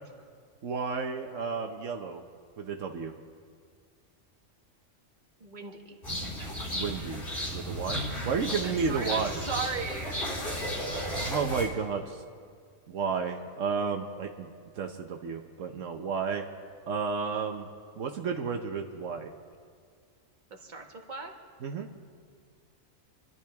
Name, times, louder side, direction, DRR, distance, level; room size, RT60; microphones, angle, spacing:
voice 1, 0.6-2.2 2.6-3.1 6.7-7.3 7.5-9.4 11.2-12.2 12.9-14.5 14.8-16.4 16.9-17.7 18.0-19.3 21.6-21.9, right 5 dB, 80° right, 4 dB, 1.2 m, -32 dB
voice 2, 5.4-6.0 8.6-11.3 20.5-21.3, right 4 dB, 35° right, 1 dB, 1.6 m, -39 dB
sound 1, 6.0-11.7, equal, 60° left, 3.4 m, -34 dB
28.0 x 12.0 x 3.5 m, 2.1 s
omnidirectional pair, 1.3 m